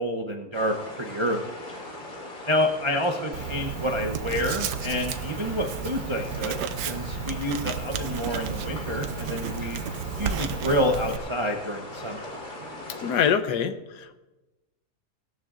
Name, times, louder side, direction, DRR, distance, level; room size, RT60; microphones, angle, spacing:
voice 1, 0.0-1.5 2.5-9.8 10.2-12.3, equal, 30° right, 2 dB, 0.5 m, -28 dB
sound 1, 0.5-13.3, left 1 dB, 60° left, 3.0 m, -40 dB
Writing, 3.3-11.2, right 7 dB, 85° right, 1.3 m, -33 dB
voice 2, 13.0-14.2, left 7 dB, 90° left, 10 dB, 1.4 m, -25 dB
19.0 x 13.5 x 2.5 m, 1.1 s
omnidirectional pair, 1.7 m